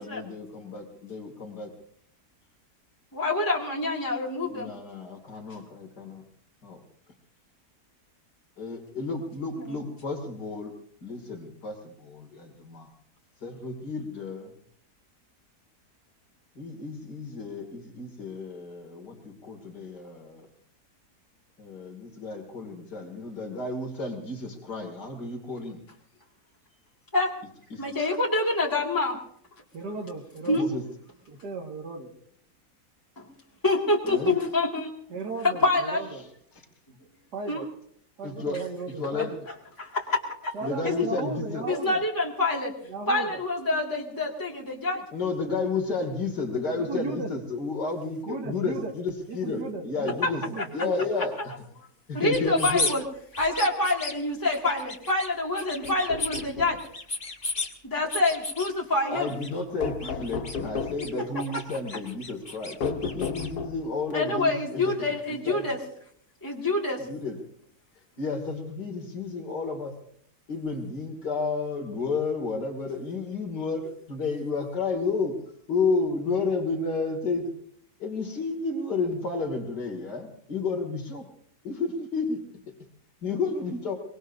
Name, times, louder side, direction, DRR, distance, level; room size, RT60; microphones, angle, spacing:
voice 1, 0.0-1.7 4.5-6.2 6.6-6.8 8.6-10.7 11.0-12.9 13.4-14.5 16.6-20.5 21.6-25.8 27.7-27.8 30.5-30.8 34.0-34.3 38.2-38.6 39.0-39.3 40.6-41.6 45.1-50.4 50.7-51.3 52.1-52.9 59.1-64.9 65.4-65.6 67.0-67.4 68.2-69.9 70.5-75.3 75.7-77.5 78.0-81.2 81.6-82.4 83.2-83.9, left 4 dB, 90° left, 4 dB, 3.1 m, -31 dB
voice 2, 3.1-4.7 27.1-27.3 27.8-29.2 30.5-30.7 33.2-33.3 33.6-34.9 35.6-36.0 37.4-37.6 39.8-40.5 40.9-41.1 41.7-42.7 43.1-45.0 50.2-50.3 50.6-50.7 52.1-53.0 53.4-56.8 57.8-59.3 64.1-65.8 66.4-67.1, left 2 dB, 10° left, -3 dB, 2.3 m, -26 dB
voice 3, 29.7-30.7 31.3-32.1 35.1-36.2 37.3-37.7 38.2-39.4 40.5-42.0 42.9-43.4 46.8-47.4 48.3-48.9 49.3-51.1, right 3 dB, 85° right, 2 dB, 2.5 m, -36 dB
sound 1, 52.3-53.0 53.3-54.1 54.5-55.3 55.5-56.4 56.8-57.7 58.1-58.7 59.2-59.5 59.8-61.1 61.4-63.5, left 2 dB, 35° left, 2.1 m, -34 dB
sound 2, 55.8-56.8 59.8-61.1 62.8-64.0, left 5 dB, 70° left, 1.6 m, -34 dB
24.0 x 22.0 x 2.7 m, 0.65 s
omnidirectional pair, 1.7 m